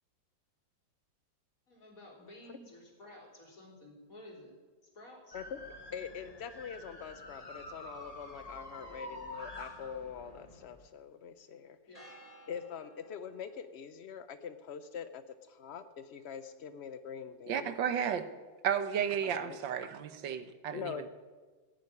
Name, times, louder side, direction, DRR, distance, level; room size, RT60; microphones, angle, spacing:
voice 1, 1.7-4.5 4.9-5.4 8.7-9.1 11.9-12.1, left 1 dB, 45° left, -1 dB, 4.1 m, -53 dB
sound 1, 5.3-10.8 11.9-13.6, left 1 dB, 20° left, 2.0 m, -49 dB
voice 2, 5.9-11.8 12.5-17.8 19.2-19.6 20.7-21.1, left 7 dB, 80° left, 11 dB, 0.5 m, -44 dB
voice 3, 17.5-18.3 18.6-21.0, right 8 dB, 80° right, 11 dB, 1.6 m, -33 dB
16.0 x 7.7 x 9.7 m, 1.4 s
omnidirectional pair, 2.1 m